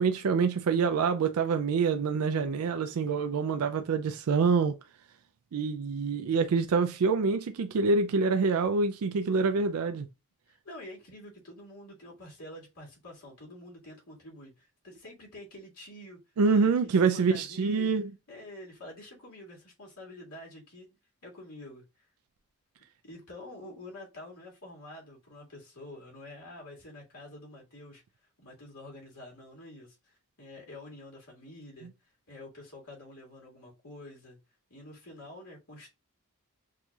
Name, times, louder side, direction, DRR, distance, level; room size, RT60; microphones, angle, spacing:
voice 1, 0.0-4.8 5.5-10.1 16.4-18.1, right 5 dB, 75° right, 0.4 m, -26 dB
voice 2, 10.5-16.2 16.5-17.9 18.3-20.9 21.2-22.0 23.0-28.0 28.4-31.9 32.3-34.4 34.7-35.9, left 1 dB, 90° left, 2.1 m, -47 dB
6.2 x 2.7 x 2.3 m
head